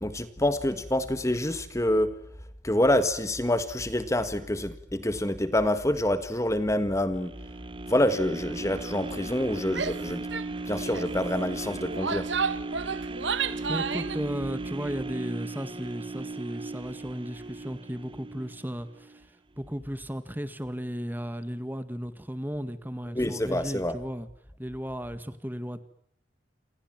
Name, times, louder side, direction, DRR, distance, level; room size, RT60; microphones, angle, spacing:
voice 1, 0.0-2.1 2.6-7.3 7.9-10.2 10.7-12.3 23.1-24.0, left 1 dB, 15° left, 11 dB, 1.6 m, -26 dB
sound 1, 7.1-19.2 19.7-19.8, right 3 dB, 25° right, 1.1 m, -37 dB
Female speech woman speaking / Yell, 9.7-10.0 10.3-10.5 10.8-11.1 11.8-14.2, right 6 dB, 75° right, 1.7 m, -31 dB
voice 2, 13.7-19.3 19.6-24.3 24.6-25.8, equal, 10° right, 11 dB, 1.9 m, -35 dB
28.5 x 27.5 x 7.6 m, 0.68 s
head